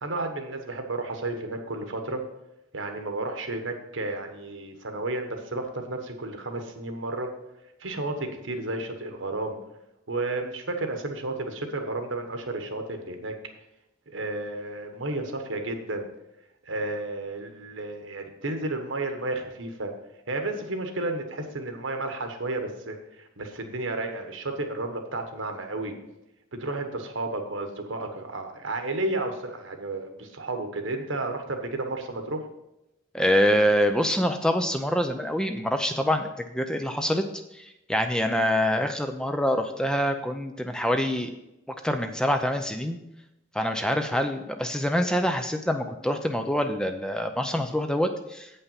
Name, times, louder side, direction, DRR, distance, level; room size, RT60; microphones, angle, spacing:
voice 1, 0.0-2.2 2.7-7.3 7.8-9.6 10.1-13.3 14.1-16.1 16.7-19.9 20.3-25.9 26.6-32.4, right 2 dB, 80° right, 5 dB, 1.2 m, -32 dB
voice 2, 33.1-37.2 37.5-41.3 41.8-43.0 43.5-48.5, equal, 5° left, 6 dB, 0.4 m, -25 dB
8.2 x 5.6 x 5.7 m, 0.89 s
head